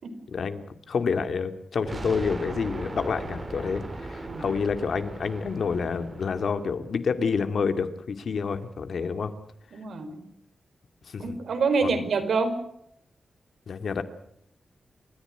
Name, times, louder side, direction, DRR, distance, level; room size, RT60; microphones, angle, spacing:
voice 1, 0.3-9.3 11.1-11.4 11.8-12.0 13.7-14.0, left 5 dB, 65° left, 9 dB, 2.2 m, -28 dB
sound 1, 1.8-6.7, right 2 dB, 30° right, 4.8 m, -38 dB
voice 2, 9.7-10.2 11.2-12.6, right 4 dB, 80° right, 8 dB, 4.9 m, -27 dB
30.0 x 14.5 x 7.9 m, 0.77 s
wide cardioid pair, 120°, 0 cm